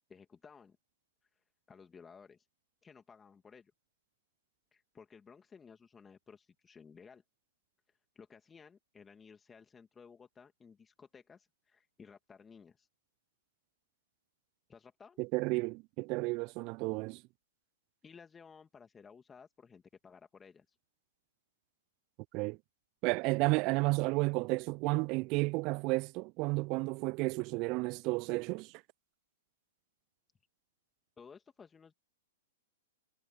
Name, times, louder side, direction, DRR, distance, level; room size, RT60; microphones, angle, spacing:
voice 1, 0.1-0.8 1.7-2.5 2.8-3.7 4.7-7.2 7.9-12.9 14.7-15.2 18.0-20.8 31.2-31.9, left 6 dB, 15° left, 2.3 m, -56 dB
voice 2, 15.2-17.2 22.3-22.6 23.0-28.7, right 26 dB, 40° right, 0.3 m, -32 dB
figure-of-eight pair, 110°, 0 cm